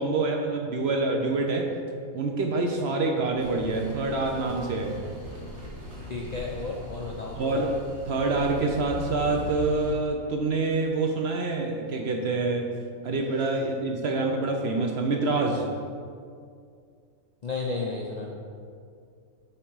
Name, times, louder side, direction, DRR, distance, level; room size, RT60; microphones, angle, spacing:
voice 1, 0.0-1.7 2.1-5.0 7.4-7.7 8.1-12.7 13.0-15.6, right 3 dB, 60° right, 2 dB, 0.8 m, -26 dB
sound 1, 3.4-9.9, left 1 dB, 75° right, 1.7 m, -40 dB
voice 2, 6.1-7.6 17.4-18.3, left 3 dB, 50° left, -2 dB, 0.5 m, -33 dB
8.6 x 3.7 x 4.6 m, 2.3 s
omnidirectional pair, 1.4 m